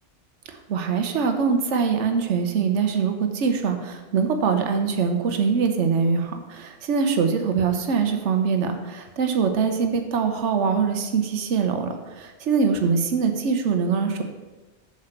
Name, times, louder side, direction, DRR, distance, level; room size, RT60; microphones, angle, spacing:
voice 1, 0.5-14.2, right 5 dB, 80° right, 5 dB, 1.1 m, -23 dB
7.5 x 6.3 x 4.5 m, 1.2 s
omnidirectional pair, 1.2 m